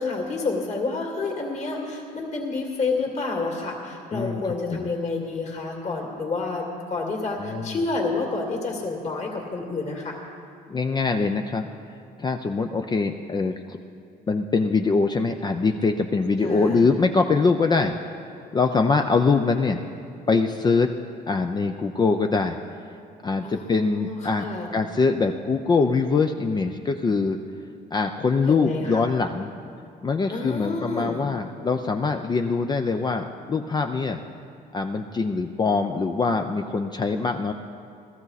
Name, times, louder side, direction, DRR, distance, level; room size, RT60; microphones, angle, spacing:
voice 1, 0.0-10.2 16.4-16.9 23.4-24.7 28.5-29.1 30.3-31.2, left 3 dB, 40° left, -1 dB, 2.4 m, -29 dB
voice 2, 4.1-4.4 4.7-4.9 7.4-7.8 10.7-11.7 12.2-13.8 14.3-17.9 18.5-19.8 20.3-20.9 21.3-22.6 23.2-24.5 24.7-27.4 27.9-29.5 30.0-34.2 34.7-37.5, left 4 dB, 25° left, 5 dB, 0.5 m, -23 dB
16.5 x 13.5 x 4.1 m, 2.5 s
cardioid pair, 110°, 17 cm